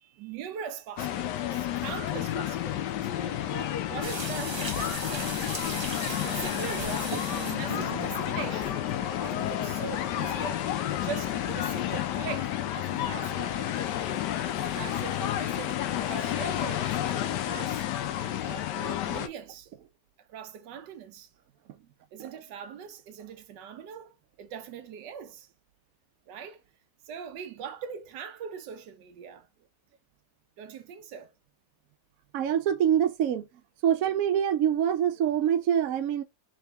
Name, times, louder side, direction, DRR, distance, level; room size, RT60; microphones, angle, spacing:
voice 1, 0.0-5.6 6.2-8.8 9.2-10.6 10.9-13.7 14.7-17.9 18.4-19.7 20.2-21.3 22.1-25.5 26.3-26.6 27.0-29.5 30.6-31.3, right 7 dB, 85° right, 1.4 m, -41 dB
sound 1, 1.0-19.3, left 12 dB, 80° left, 1.2 m, -31 dB
sound 2, 4.0-9.1, right 3 dB, 35° right, 0.4 m, -38 dB
sound 3, 5.6-15.3, equal, 10° right, 0.9 m, -48 dB
voice 2, 6.4-6.8 7.5-7.7 8.6-8.7 18.8-18.9 22.2-22.3 32.3-33.5 33.8-36.2, right 9 dB, 65° right, 1.0 m, -26 dB
3.6 x 3.4 x 3.4 m
omnidirectional pair, 1.8 m